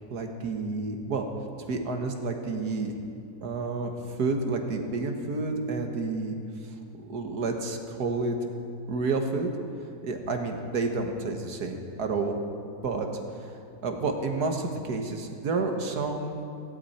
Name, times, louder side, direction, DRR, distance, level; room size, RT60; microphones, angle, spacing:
voice 1, 0.1-1.3 1.7-3.0 3.4-6.4 6.6-8.4 8.9-9.5 10.0-12.4 12.8-13.1 13.4-16.4, right 3 dB, 80° right, 4 dB, 1.9 m, -30 dB
17.0 x 16.0 x 4.3 m, 2.6 s
omnidirectional pair, 1.7 m